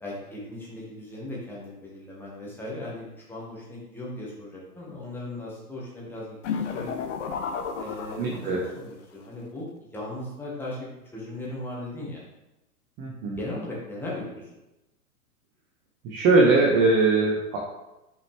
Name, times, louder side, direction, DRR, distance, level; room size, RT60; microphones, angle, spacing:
voice 1, 0.0-6.9 7.8-12.2 13.4-14.5, left 1 dB, 5° left, -6 dB, 1.6 m, -37 dB
sound 1, 6.4-8.8, left 6 dB, 50° left, 0.7 m, -32 dB
voice 2, 8.2-8.6 13.0-13.4 16.0-17.6, right 3 dB, 20° right, -2 dB, 0.7 m, -21 dB
5.7 x 4.9 x 3.4 m, 0.96 s
figure-of-eight pair, 110°, 46 cm